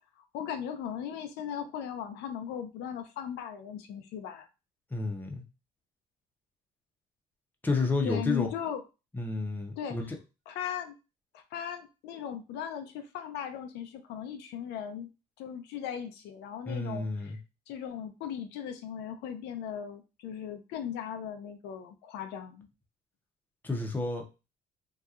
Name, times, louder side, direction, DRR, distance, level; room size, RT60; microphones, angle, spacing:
voice 1, 0.3-4.5 8.0-8.8 9.8-10.0 10.5-10.9 11.3-15.1 15.4-17.4 17.7-22.7, left 9 dB, 85° left, 7 dB, 0.5 m, -38 dB
voice 2, 4.9-5.4 7.6-8.5 9.1-10.2 16.7-17.4 23.6-24.2, left 3 dB, 10° left, 2 dB, 0.6 m, -31 dB
2.8 x 2.3 x 2.4 m, 0.28 s
cardioid pair, 110°, 17 cm